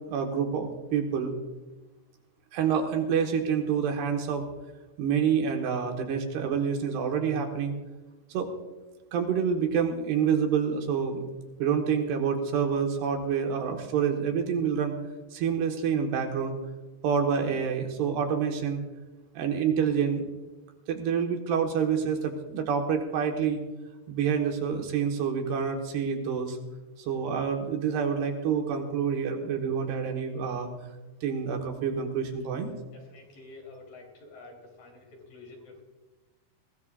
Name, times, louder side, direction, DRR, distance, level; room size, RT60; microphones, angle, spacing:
voice 1, 0.1-1.3 2.5-4.4 5.0-7.7 8.3-8.5 9.1-11.2 11.6-14.9 15.3-16.5 17.0-18.8 19.3-20.3 20.9-23.6 24.1-26.6 27.0-30.7 31.2-32.7, right 7 dB, 70° right, 3 dB, 3.5 m, -27 dB
voice 2, 32.9-35.8, left 3 dB, 50° left, 0 dB, 4.9 m, -49 dB
21.0 x 18.0 x 2.5 m, 1.1 s
omnidirectional pair, 5.0 m